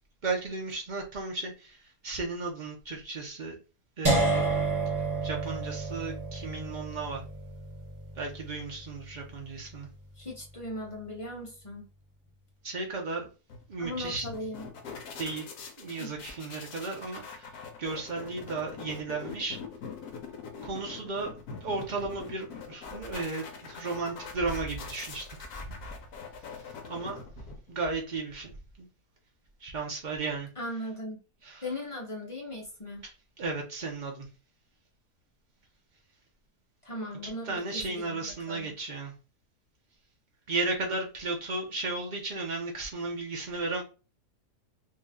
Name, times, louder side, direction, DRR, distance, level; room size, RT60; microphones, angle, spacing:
voice 1, 0.2-3.6 4.0-4.4 4.9-7.2 8.1-9.9 12.6-13.3 13.7-14.3 15.2-15.5 15.8-19.6 20.6-21.3 21.6-25.3 25.6-25.7 26.8-27.2 27.7-28.9 29.6-30.5 31.4-31.6 33.0-34.3 37.2-39.1 40.5-43.8, right 3 dB, 80° right, 0 dB, 0.4 m, -34 dB
sound 1, 4.0-10.0, right 3 dB, 20° right, 0.5 m, -31 dB
voice 2, 10.2-11.9 13.8-14.6 16.0-16.1 30.6-31.2 31.6-33.0 36.8-38.7, left 1 dB, 30° left, -2 dB, 0.6 m, -38 dB
sound 2, 13.5-27.8, left 5 dB, 70° left, 1.1 m, -44 dB
3.0 x 2.7 x 3.5 m, 0.33 s
omnidirectional pair, 1.7 m